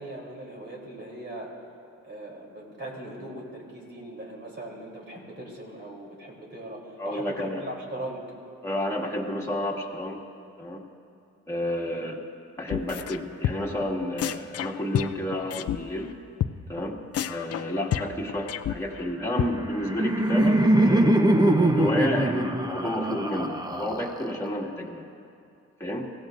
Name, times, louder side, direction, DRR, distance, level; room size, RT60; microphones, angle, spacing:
voice 1, 0.0-1.5 2.0-8.2 11.9-12.1, right 1 dB, 35° right, -2 dB, 3.6 m, -39 dB
voice 2, 7.0-7.6 8.6-10.2 10.6-10.8 11.5-12.2 12.6-16.1 16.7-25.0 25.8-26.1, left 1 dB, 10° left, -3 dB, 2.2 m, -31 dB
sound 1, 12.7-13.2 13.4-13.8 14.2-15.8 16.0-16.1 16.4-16.5 16.8-16.9 17.1-19.1 19.4-19.5, left 11 dB, 55° left, 0.5 m, -29 dB
Laughter, 19.4-24.5, right 1 dB, 15° right, 0.9 m, -22 dB
23.0 x 16.0 x 2.6 m, 2.5 s
cardioid pair, 90°, 30 cm